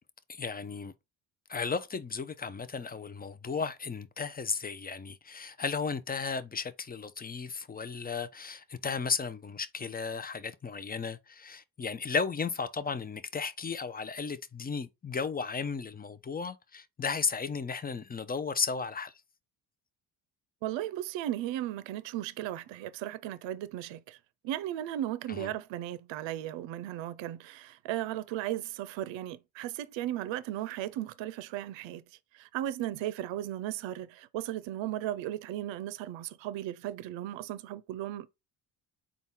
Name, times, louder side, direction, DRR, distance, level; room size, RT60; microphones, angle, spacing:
voice 1, 0.3-0.9 1.5-19.1 25.3-25.5, left 5 dB, 20° left, 0.5 m, -34 dB
voice 2, 20.6-24.2 24.4-32.0 32.3-38.3, right 13 dB, 70° right, 0.6 m, -36 dB
4.0 x 2.4 x 3.6 m
supercardioid pair, 65°, 47 cm